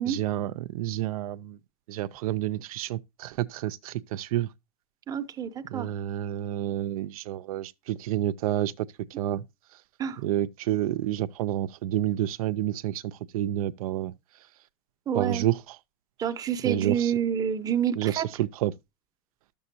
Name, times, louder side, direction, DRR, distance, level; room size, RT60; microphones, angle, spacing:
voice 1, 0.0-1.6 1.9-4.5 5.7-9.4 10.2-14.1 15.1-15.8 16.6-17.1 18.0-18.7, right 13 dB, 80° right, 0.5 m, -29 dB
voice 2, 5.1-5.9 10.0-10.2 15.1-15.5 16.2-18.2, right 8 dB, 20° right, 0.7 m, -28 dB
11.5 x 6.9 x 2.7 m
supercardioid pair, 135°, 18 cm